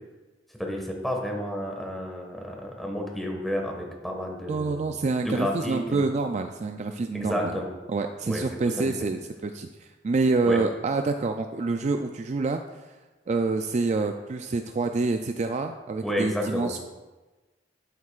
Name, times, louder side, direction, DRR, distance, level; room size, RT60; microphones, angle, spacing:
voice 1, 0.6-5.0 5.2-6.0 7.1-7.7 8.2-8.4 8.8-8.9 10.4-10.6 16.0-16.8, equal, ahead, 0 dB, 1.5 m, -31 dB
voice 2, 4.5-7.5 7.9-12.6 13.3-16.8, right 3 dB, 40° right, 6 dB, 0.4 m, -27 dB
12.0 x 8.2 x 2.4 m, 1.2 s
head